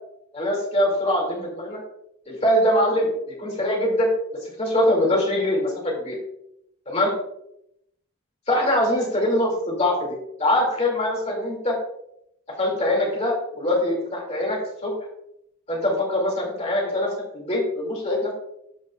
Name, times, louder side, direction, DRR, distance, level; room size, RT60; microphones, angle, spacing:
voice 1, 0.3-1.8 2.3-3.1 3.4-4.1 4.4-6.2 6.9-7.1 8.5-11.8 12.6-14.9 15.7-18.3, left 1 dB, 30° left, -1 dB, 2.3 m, -23 dB
13.5 x 5.3 x 2.3 m, 0.77 s
head